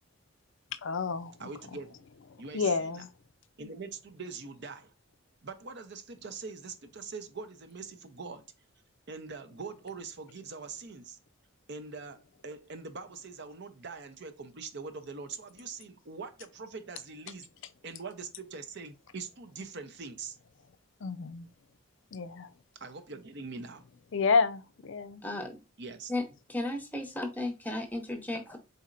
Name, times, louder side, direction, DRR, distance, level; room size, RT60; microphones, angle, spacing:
voice 1, 0.8-1.3 2.5-3.1 21.0-21.5 22.1-22.5 24.1-25.2, left 4 dB, 60° left, 0.4 m, -29 dB
voice 2, 1.4-2.0 2.4-3.1 3.6-4.9 5.4-8.5 9.1-11.2 11.7-17.5 17.8-20.4 22.7-23.8 25.8-26.1, right 4 dB, 55° right, 0.6 m, -43 dB
voice 3, 25.2-25.6 26.1-28.6, left 2 dB, 10° left, 0.8 m, -35 dB
4.2 x 4.0 x 2.4 m
head